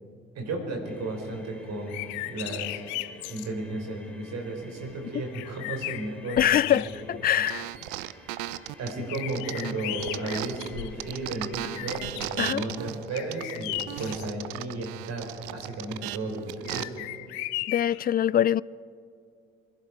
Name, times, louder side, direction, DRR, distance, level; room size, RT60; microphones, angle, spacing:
voice 1, 0.4-2.9 3.3-6.4 6.7-6.8 7.3-7.4 8.8-17.1, right 2 dB, 60° right, 4.1 m, -34 dB
sound 1, 0.8-12.0, left 1 dB, 5° left, 3.4 m, -50 dB
sound 2, 1.8-3.5 4.9-5.0 5.3-7.3 7.8-7.9 9.1-11.1 11.5-12.4 13.1-14.3 16.6-18.1, left 18 dB, 75° left, 0.6 m, -36 dB
voice 2, 6.4-7.7 12.4-12.6 17.7-18.6, left 10 dB, 30° left, 0.4 m, -24 dB
sound 3, 7.5-10.7 11.0-16.8, right 16 dB, 80° right, 0.6 m, -36 dB
25.5 x 11.0 x 4.5 m
hypercardioid pair, 45°, 29 cm